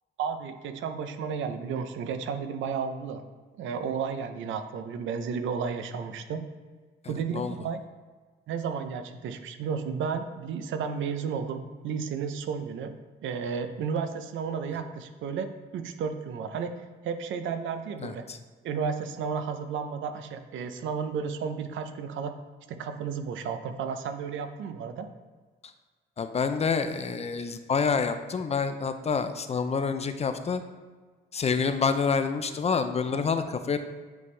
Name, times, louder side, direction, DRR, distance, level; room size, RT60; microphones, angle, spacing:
voice 1, 0.2-3.2 3.6-6.5 7.1-7.8 8.5-12.9 13.2-16.7 17.0-18.2 18.6-22.3 22.7-25.1 33.1-33.2, right 6 dB, 75° right, 8 dB, 0.6 m, -33 dB
voice 2, 18.0-18.4 26.2-30.6 31.3-33.8, left 5 dB, 30° left, 9 dB, 0.5 m, -27 dB
9.1 x 3.5 x 3.3 m, 1.4 s
cardioid pair, 90°, 20 cm